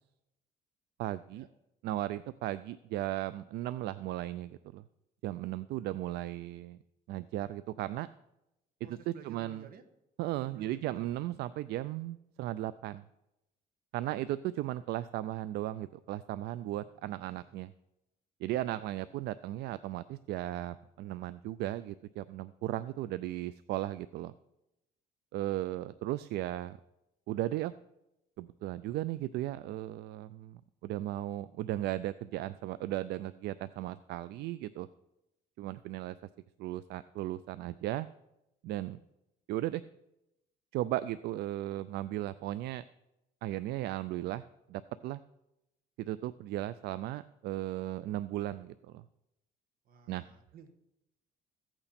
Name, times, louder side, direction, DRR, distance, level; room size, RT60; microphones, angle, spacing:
voice 1, 1.0-1.5 1.8-4.8 5.2-6.8 7.1-8.1 9.1-9.6 10.2-13.0 13.9-17.7 18.4-24.3 25.3-26.8 27.3-27.7 28.4-34.9 35.6-36.2 36.6-38.1 38.6-39.0 39.5-39.8 40.7-42.8 43.4-44.4 44.7-45.2 46.0-49.0 50.1-50.2, right 14 dB, 80° right, 16 dB, 0.4 m, -36 dB
voice 2, 8.8-9.8 10.4-11.1 14.2-14.3 16.6-17.6 49.8-50.7, right 7 dB, 60° right, 9 dB, 1.4 m, -55 dB
15.0 x 8.9 x 4.3 m, 0.88 s
cardioid pair, 110°, 17 cm